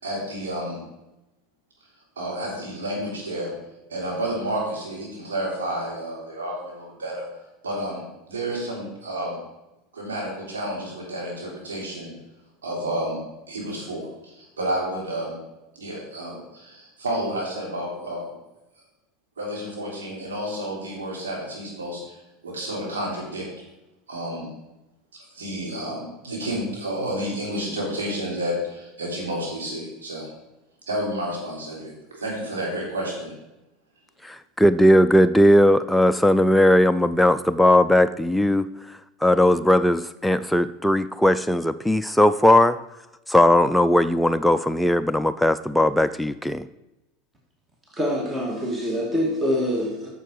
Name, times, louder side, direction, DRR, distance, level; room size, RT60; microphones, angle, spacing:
voice 1, 0.0-0.8 2.2-3.5 3.9-7.2 7.6-9.4 9.9-12.1 12.6-13.2 13.5-15.3 15.7-18.3 19.4-22.2 22.4-23.5 24.1-24.5 25.3-30.3 30.9-33.3, right 1 dB, 90° right, -3 dB, 3.4 m, -30 dB
voice 2, 34.2-38.7 39.2-42.8 43.3-46.7, left 1 dB, 5° left, 10 dB, 0.3 m, -18 dB
voice 3, 47.9-50.1, equal, 20° right, -2 dB, 2.2 m, -25 dB
9.0 x 6.8 x 4.7 m, 0.95 s
hypercardioid pair, 85°, 0 cm